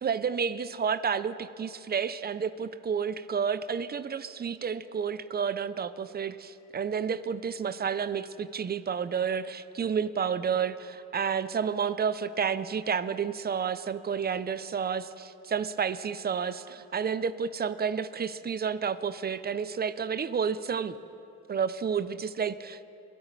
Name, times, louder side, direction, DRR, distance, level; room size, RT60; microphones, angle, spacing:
voice 1, 0.0-20.9 21.5-22.8, right 6 dB, 30° right, 14 dB, 0.5 m, -30 dB
23.0 x 12.0 x 3.3 m, 2.7 s
cardioid pair, 90°, 30 cm